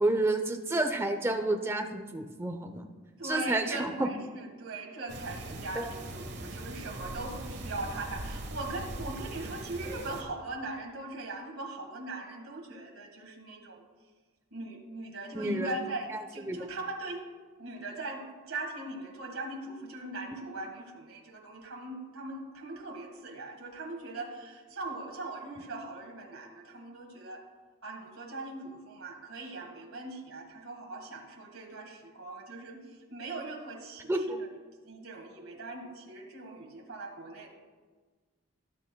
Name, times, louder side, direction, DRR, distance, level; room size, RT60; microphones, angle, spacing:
voice 1, 0.0-2.9 3.2-4.1 5.8-5.9 15.3-15.8 16.1-16.2 16.5-16.7 34.1-34.4, right 2 dB, 10° right, 5 dB, 0.6 m, -30 dB
voice 2, 3.2-13.8 14.5-17.2 17.6-27.4 27.8-34.5 34.8-37.5, right 2 dB, 85° right, 1 dB, 1.8 m, -40 dB
sound 1, 5.1-10.2, right 1 dB, 55° right, 1.3 m, -41 dB
19.0 x 8.1 x 2.2 m, 1.4 s
head